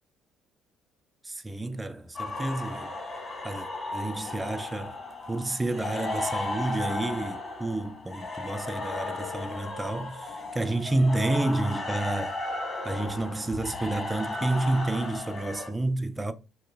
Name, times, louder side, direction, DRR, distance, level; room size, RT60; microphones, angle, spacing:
voice 1, 1.2-2.9 3.4-5.0 5.3-12.4 12.8-16.3, right 2 dB, 15° right, 0.3 m, -30 dB
sound 1, 2.1-15.7, left 2 dB, 35° left, 1.7 m, -35 dB
4.8 x 2.9 x 2.2 m
figure-of-eight pair, 50°, 0 cm